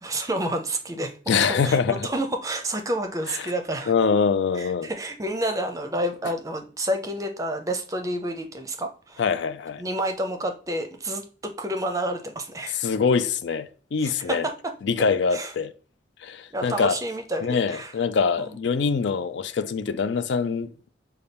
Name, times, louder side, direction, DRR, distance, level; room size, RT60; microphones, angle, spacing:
voice 1, 0.0-1.1 1.5-3.9 4.6-9.2 9.8-12.9 14.0-14.5 15.3-15.5 16.5-17.9 18.4-18.5, right 1 dB, 20° right, 0.5 m, -29 dB
voice 2, 1.3-2.1 3.3-3.5 3.9-4.9 9.2-9.8 12.7-14.5 14.8-15.7 16.2-17.0 17.4-20.9, left 5 dB, 75° left, 0.4 m, -24 dB
5.5 x 2.3 x 3.4 m
head